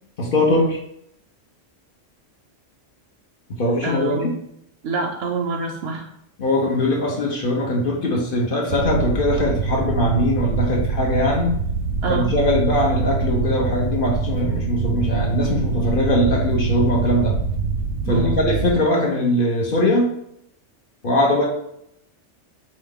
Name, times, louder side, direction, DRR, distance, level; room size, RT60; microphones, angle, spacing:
voice 1, 0.2-0.8 3.6-4.3 6.4-11.6 12.1-17.3 18.1-20.1 21.0-21.5, left 1 dB, 50° left, -1 dB, 0.9 m, -21 dB
voice 2, 3.8-4.4 4.8-6.1 12.0-12.3 18.0-18.4, right 3 dB, 65° right, 3 dB, 0.7 m, -26 dB
sound 1, 8.7-18.7, right 4 dB, 90° right, 0.9 m, -24 dB
3.7 x 2.9 x 3.5 m, 0.76 s
omnidirectional pair, 1.3 m